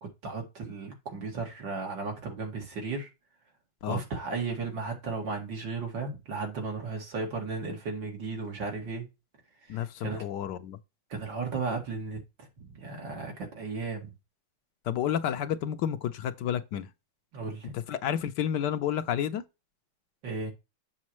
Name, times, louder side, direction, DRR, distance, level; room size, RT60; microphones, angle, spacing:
voice 1, 0.0-3.1 3.9-9.1 9.7-10.3 11.1-14.1 17.3-17.7 20.2-20.5, right 4 dB, 85° right, 2.9 m, -35 dB
voice 2, 9.7-10.8 14.9-16.9 17.7-19.4, left 9 dB, 70° left, 1.3 m, -30 dB
7.4 x 6.3 x 3.1 m
omnidirectional pair, 2.0 m